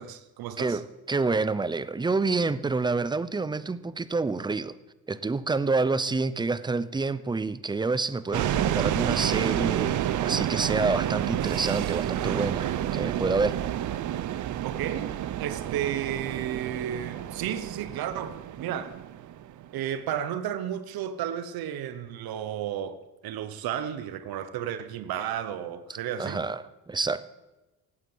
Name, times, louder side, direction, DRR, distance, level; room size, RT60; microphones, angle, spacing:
voice 1, 0.0-0.8 14.6-15.1 15.4-18.9 19.7-26.5, right 10 dB, 75° right, 1.1 m, -33 dB
voice 2, 0.6-4.8 5.1-9.9 10.2-13.6 26.2-27.2, right 3 dB, 10° right, 0.6 m, -28 dB
sound 1, 8.3-19.8, right 11 dB, 55° right, 0.7 m, -29 dB
16.0 x 9.0 x 7.9 m
cardioid pair, 125°, 37 cm